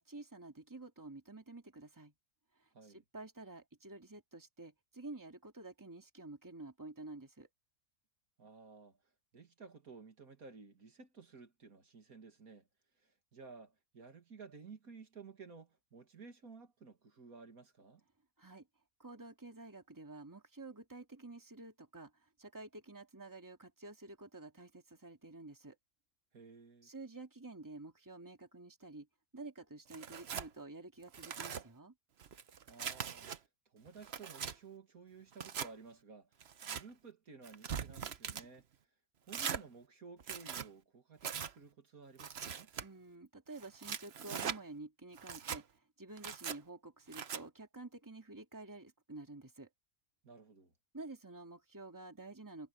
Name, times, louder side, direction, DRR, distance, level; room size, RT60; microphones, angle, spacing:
voice 1, 0.0-2.1 2.6-7.5 18.4-18.7 19.0-22.1 22.4-25.8 26.8-29.1 29.3-31.9 42.8-45.6 46.0-49.7 50.9-52.7, right 2 dB, 10° right, 2.3 m, -50 dB
voice 2, 2.7-3.0 8.4-9.0 9.3-12.7 13.0-18.0 26.3-26.9 32.7-33.3 33.7-38.6 39.3-42.7 50.2-50.7, right 4 dB, 70° right, 2.8 m, -54 dB
Tearing, 29.9-30.5 31.0-31.6 32.2-33.4 33.9-34.5 35.3-35.7 36.4-36.8 37.4-38.5 39.3-39.6 40.2-40.7 41.2-41.5 42.2-42.8 43.6-44.6 45.2-45.6 46.2-46.6 47.1-47.4, right 7 dB, 50° right, 1.1 m, -41 dB
omnidirectional pair, 1.6 m